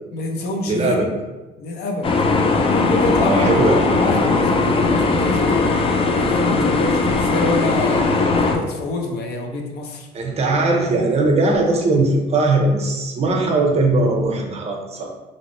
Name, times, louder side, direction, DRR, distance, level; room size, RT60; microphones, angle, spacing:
voice 1, 0.1-1.0 1.6-2.1 2.6-5.8 6.1-8.0 8.4-10.1, left 2 dB, 70° left, 2 dB, 0.6 m, -26 dB
voice 2, 0.7-1.1 3.2-3.9 10.1-15.1, right 2 dB, 40° right, 1 dB, 0.7 m, -19 dB
sound 1, 2.0-8.6, left 3 dB, 35° left, 0.4 m, -18 dB
3.0 x 2.9 x 3.0 m, 1.1 s
cardioid pair, 110°, 17 cm